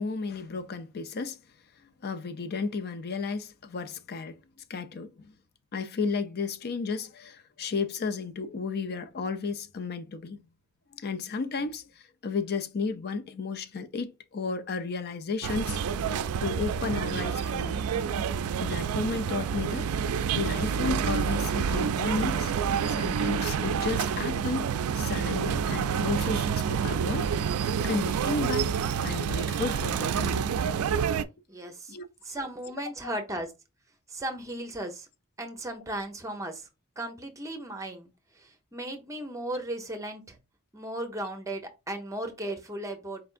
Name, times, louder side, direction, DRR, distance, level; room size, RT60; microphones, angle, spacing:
voice 1, 0.0-1.4 1.8-4.3 4.7-5.3 5.7-10.4 10.9-11.9 12.2-15.8 16.4-17.8 18.6-19.9 20.3-22.5 22.9-27.3 27.8-28.7 29.0-30.5 31.6-32.1, left 4 dB, 50° left, 0.5 m, -33 dB
sound 1, 15.4-31.2, right 7 dB, 80° right, 0.4 m, -28 dB
voice 2, 31.5-31.9 32.2-33.5 34.1-35.1 35.4-36.7 37.0-38.1 38.4-40.4 40.7-43.2, right 1 dB, 15° right, 0.8 m, -36 dB
4.6 x 3.4 x 2.5 m
head